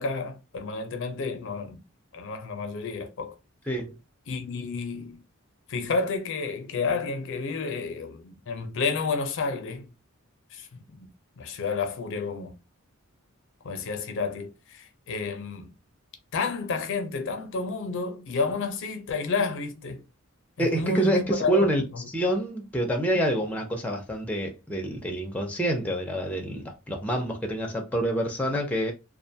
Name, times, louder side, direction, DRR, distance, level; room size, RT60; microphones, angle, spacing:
voice 1, 0.0-1.8 2.1-3.3 4.3-5.2 5.7-9.9 10.5-11.1 11.4-12.6 13.6-15.7 16.3-20.0 20.6-22.0, left 4 dB, 60° left, 0.5 m, -30 dB
voice 2, 20.6-21.8 22.1-28.9, right 1 dB, 5° left, 0.5 m, -27 dB
2.4 x 2.2 x 2.7 m
head